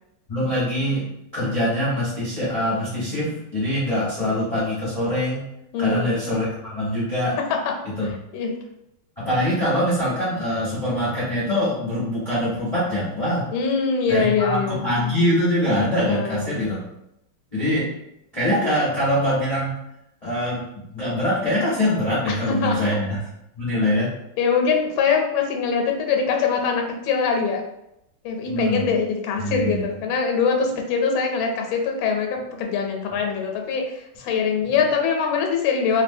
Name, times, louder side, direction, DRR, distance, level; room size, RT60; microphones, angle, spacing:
voice 1, 0.3-5.4 5.8-7.4 8.0-8.1 9.2-13.5 14.1-16.8 17.5-17.9 18.3-19.8 20.2-23.2 23.5-24.1 28.5-28.8 29.4-29.9 34.6-34.7, left 1 dB, 35° left, -9 dB, 0.6 m, -23 dB
voice 2, 5.7-6.1 8.3-8.5 13.5-14.8 16.1-16.6 22.4-22.8 24.4-27.6 28.2-36.0, left 5 dB, 75° left, 2 dB, 1.4 m, -23 dB
3.2 x 2.6 x 2.6 m, 0.83 s
omnidirectional pair, 2.2 m